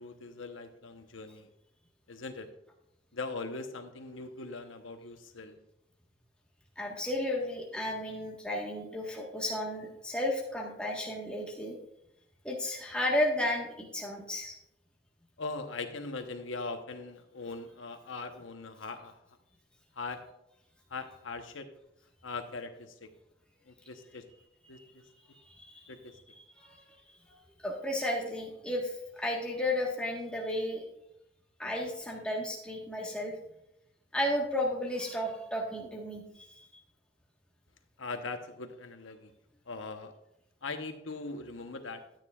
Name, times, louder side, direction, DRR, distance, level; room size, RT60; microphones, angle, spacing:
voice 1, 0.0-1.5 2.1-2.5 3.1-5.6 15.4-19.2 20.0-20.2 20.9-21.7 22.2-23.1 23.7-24.2 24.7-25.0 25.9-26.1 38.0-39.3 39.7-40.1 40.6-42.0, left 3 dB, 85° left, 7 dB, 1.0 m, -40 dB
voice 2, 6.8-11.8 12.4-14.5 24.7-24.8 25.3-25.9 26.4-26.8 27.6-30.8 31.6-33.4 34.1-36.7, left 1 dB, 5° left, -2 dB, 1.4 m, -33 dB
12.5 x 9.0 x 2.4 m, 0.83 s
head